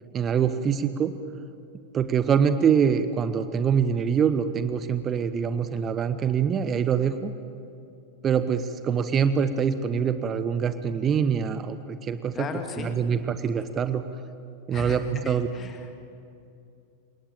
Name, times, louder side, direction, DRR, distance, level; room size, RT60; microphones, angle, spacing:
voice 1, 0.1-1.1 1.9-7.3 8.2-12.3 12.8-14.0 14.7-15.5, right 7 dB, 25° right, 11 dB, 1.0 m, -24 dB
voice 2, 12.3-12.9 14.7-15.9, left 5 dB, 25° left, 6 dB, 2.0 m, -36 dB
28.5 x 19.0 x 8.9 m, 2.6 s
figure-of-eight pair, 90°, 0 cm